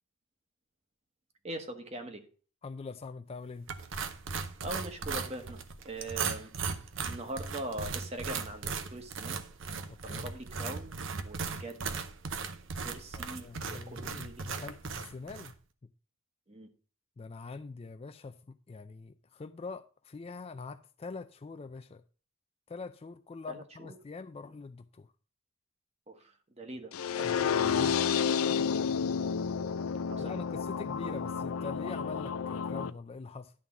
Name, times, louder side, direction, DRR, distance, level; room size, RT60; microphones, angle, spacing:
voice 1, 1.4-2.2 4.6-6.5 7.0-9.4 10.0-11.8 12.8-14.6 16.5-16.7 23.5-23.9 26.1-27.5 30.1-30.4, right 1 dB, 30° right, 1.2 m, -42 dB
voice 2, 2.6-3.7 9.9-10.3 13.2-15.5 17.2-22.0 22.7-25.1 27.2-28.0 30.2-33.5, left 4 dB, 30° left, 0.3 m, -44 dB
sound 1, 3.7-15.5, right 5 dB, 65° right, 0.7 m, -38 dB
sound 2, 26.9-32.9, left 7 dB, 85° left, 0.5 m, -30 dB
11.0 x 3.7 x 6.9 m
head